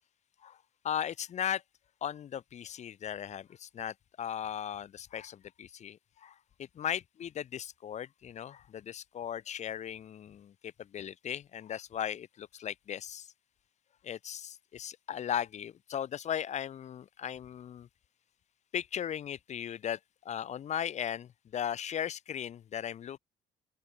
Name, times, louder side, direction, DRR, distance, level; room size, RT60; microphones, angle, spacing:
voice 1, 0.8-1.6 2.0-13.3 14.0-17.9 18.7-20.0 20.2-23.2, left 9 dB, 45° left, 0.7 m, -37 dB
open air
cardioid pair, 110°, 17 cm